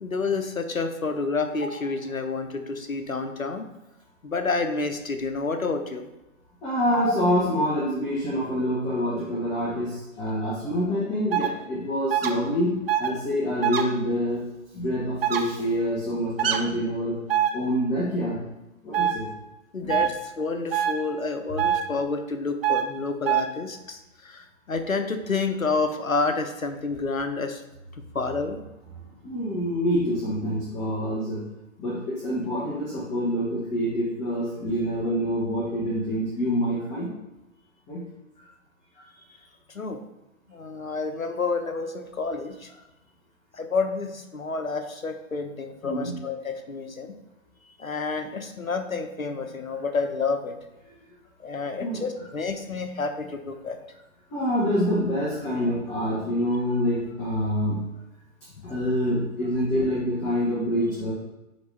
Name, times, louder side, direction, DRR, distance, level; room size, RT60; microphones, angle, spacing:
voice 1, 0.0-3.7 4.2-6.1 6.9-7.1 19.7-27.6 28.1-28.6 39.7-40.0 40.5-42.7 43.5-47.2 47.8-50.6 51.4-53.8 58.7-58.8, left 4 dB, 85° left, 7 dB, 0.9 m, -29 dB
voice 2, 6.6-14.4 14.7-17.2 17.5-18.4 18.8-19.2 19.8-19.9 29.2-31.4 31.8-37.1 37.9-38.0 45.8-46.1 51.8-52.0 54.3-57.8 58.6-61.1, equal, 15° left, -6 dB, 1.2 m, -26 dB
sound 1, 11.3-11.5 12.1-12.3 12.9-13.1 13.6-13.8 15.2-15.4 16.4-16.6 17.3-17.5 18.9-19.1 19.9-20.1 20.7-20.9 21.6-21.8 22.6-22.8 23.3-23.4, right 10 dB, 45° right, 0.8 m, -23 dB
9.5 x 4.0 x 3.3 m, 0.99 s
figure-of-eight pair, 125°, 40 cm